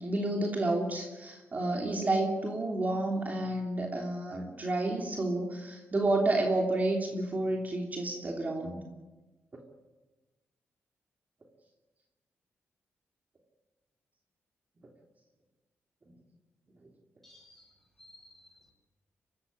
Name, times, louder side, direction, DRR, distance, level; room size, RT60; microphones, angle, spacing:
voice 1, 0.0-8.8, right 2 dB, 35° right, 1 dB, 3.2 m, -30 dB
voice 2, 17.2-17.7 18.0-18.7, left 1 dB, 5° left, 1 dB, 7.9 m, -57 dB
24.5 x 14.0 x 9.8 m, 1.2 s
cardioid pair, 80°, 5 cm